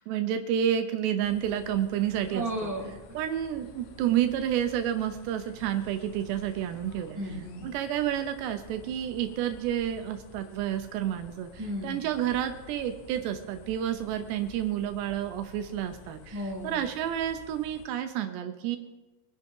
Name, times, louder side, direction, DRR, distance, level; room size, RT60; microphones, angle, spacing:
voice 1, 0.0-2.5 3.1-7.2 7.6-11.5 11.8-18.8, right 10 dB, 80° right, 8 dB, 2.6 m, -30 dB
sound 1, 1.2-17.9, left 6 dB, 85° left, 3.8 m, -51 dB
voice 2, 2.3-3.2 7.1-7.6 11.6-12.0 16.3-16.8, right 1 dB, 5° right, -4 dB, 2.5 m, -34 dB
24.0 x 10.5 x 3.8 m, 1.1 s
omnidirectional pair, 5.7 m